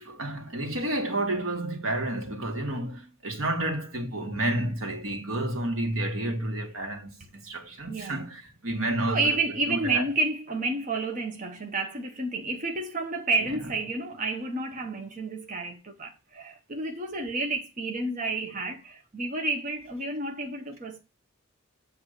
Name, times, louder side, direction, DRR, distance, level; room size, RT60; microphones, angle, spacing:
voice 1, 0.0-9.4 9.7-10.0 13.5-13.6, right 1 dB, 85° right, 1.8 m, -30 dB
voice 2, 7.9-8.3 9.1-21.0, right 3 dB, 40° right, 1.0 m, -30 dB
7.8 x 3.5 x 6.4 m
head